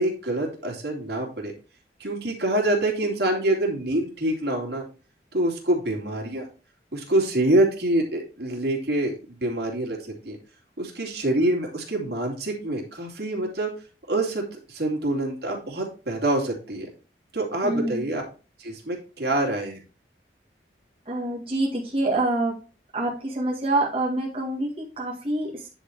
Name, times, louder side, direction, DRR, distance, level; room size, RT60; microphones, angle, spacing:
voice 1, 0.0-1.5 2.0-4.8 5.3-6.5 6.9-10.4 10.8-13.7 14.1-16.9 17.3-18.2 18.6-19.8, right 1 dB, 65° right, 0 dB, 2.8 m, -26 dB
voice 2, 17.6-18.0 21.1-22.6 22.9-25.7, right 2 dB, 30° right, -4 dB, 1.9 m, -26 dB
9.8 x 4.3 x 4.7 m, 0.34 s
head